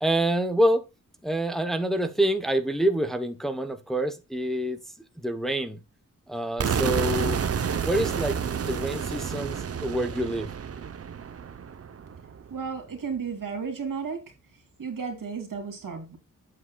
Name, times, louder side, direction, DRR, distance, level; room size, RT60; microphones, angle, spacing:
voice 1, 0.0-0.9 1.2-4.8 5.2-5.8 6.3-7.4 7.8-8.4 8.6-10.5, right 1 dB, ahead, 0.8 m, -26 dB
sound 1, 6.6-12.5, right 7 dB, 50° right, 0.7 m, -30 dB
voice 2, 12.5-14.2 14.8-16.2, right 5 dB, 85° right, 2.7 m, -33 dB
8.5 x 7.5 x 2.3 m
wide cardioid pair, 145°, 32 cm